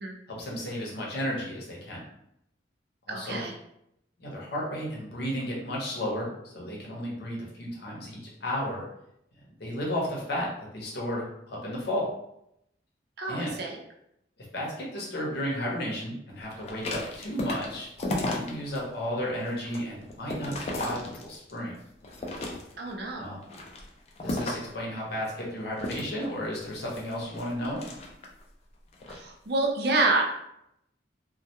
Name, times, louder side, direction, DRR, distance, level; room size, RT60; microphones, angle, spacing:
voice 1, 0.3-2.0 3.1-3.4 4.2-8.9 9.6-10.5 10.7-12.1 13.3-13.5 14.5-17.9 18.1-21.7 23.2-23.4 24.2-27.8, equal, 55° left, -4 dB, 0.7 m, -33 dB
voice 2, 3.1-3.5 13.2-13.8 22.8-23.3 29.1-30.3, right 2 dB, 55° right, 1 dB, 0.4 m, -28 dB
sound 1, 16.6-18.8 19.2-21.6 22.0-22.9 23.4-24.8 25.8-28.4 28.9-29.2, left 2 dB, 35° left, 0.3 m, -35 dB
2.2 x 2.1 x 2.8 m, 0.79 s
head